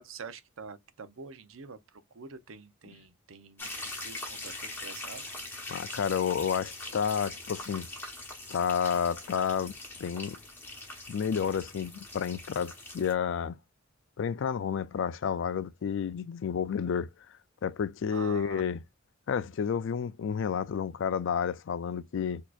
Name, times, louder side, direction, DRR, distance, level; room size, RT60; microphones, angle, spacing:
voice 1, 0.0-1.8 2.1-5.3 18.1-18.6, right 5 dB, 75° right, 0.6 m, -46 dB
sound 1, 3.6-13.1, left 2 dB, 10° left, 1.0 m, -42 dB
voice 2, 5.7-7.9 8.5-10.4 11.1-13.6 14.2-17.1 17.6-18.8 19.3-22.4, left 7 dB, 60° left, 0.4 m, -30 dB
4.1 x 2.9 x 2.4 m
head